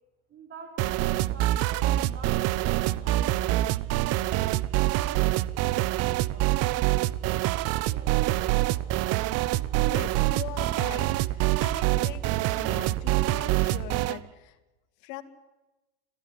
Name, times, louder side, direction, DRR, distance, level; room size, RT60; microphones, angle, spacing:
voice 1, 0.3-4.0 7.4-8.8, right 3 dB, 35° right, 4 dB, 4.2 m, -49 dB
sound 1, 0.8-14.2, right 16 dB, 55° right, 0.9 m, -26 dB
voice 2, 9.9-14.6 15.0-15.2, left 12 dB, 65° left, 8 dB, 2.6 m, -41 dB
26.5 x 16.5 x 10.0 m, 1.1 s
supercardioid pair, 120°, 31 cm